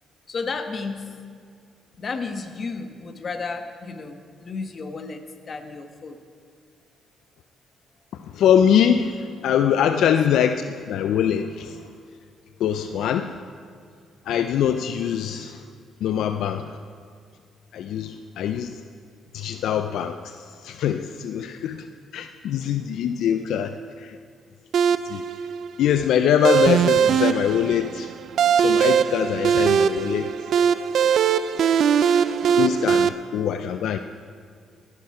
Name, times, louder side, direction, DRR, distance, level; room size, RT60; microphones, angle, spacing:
voice 1, 0.3-1.1 2.0-6.2 10.0-10.1 32.4-32.6, left 4 dB, 45° left, 6 dB, 1.3 m, -33 dB
voice 2, 8.3-11.8 12.6-13.4 14.3-15.6 16.0-16.8 17.7-18.7 19.3-20.4 20.6-21.9 22.1-24.2 25.1-25.2 25.8-28.1 28.6-30.3 31.0-31.1 31.6-31.7 32.6-34.0, left 9 dB, 80° left, 9 dB, 0.4 m, -23 dB
sound 1, 24.7-33.1, right 8 dB, 65° right, 0.5 m, -20 dB
19.0 x 10.5 x 4.8 m, 2.1 s
cardioid pair, 90°, 0 cm